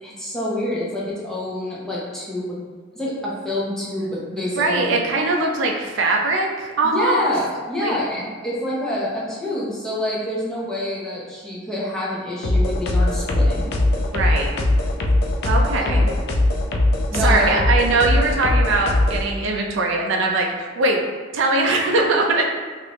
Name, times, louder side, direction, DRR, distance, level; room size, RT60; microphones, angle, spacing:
voice 1, 0.0-2.6 2.9-4.9 6.8-13.7 15.8-16.1 17.1-17.6, left 1 dB, 5° left, -8 dB, 0.7 m, -27 dB
voice 2, 4.6-7.2 7.8-8.0 14.1-14.5 15.0-15.1 15.5-16.0 17.2-21.0 21.3-22.4, right 2 dB, 70° right, 0 dB, 0.4 m, -21 dB
sound 1, 12.4-19.2, left 1 dB, 55° left, 0.4 m, -20 dB
3.2 x 2.5 x 3.0 m, 1.5 s
head